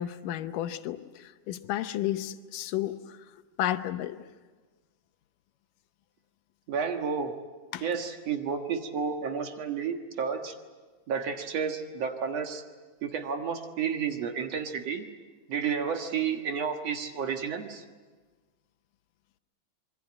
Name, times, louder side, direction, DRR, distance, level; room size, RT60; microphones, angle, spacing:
voice 1, 0.0-3.2 3.6-4.2 7.7-7.9, left 12 dB, 85° left, 10 dB, 2.5 m, -32 dB
voice 2, 6.7-7.3 7.8-10.5 11.1-12.6 13.0-15.1 15.5-17.8, right 6 dB, 55° right, 5 dB, 2.4 m, -31 dB
26.0 x 22.0 x 8.6 m, 1.4 s
omnidirectional pair, 3.7 m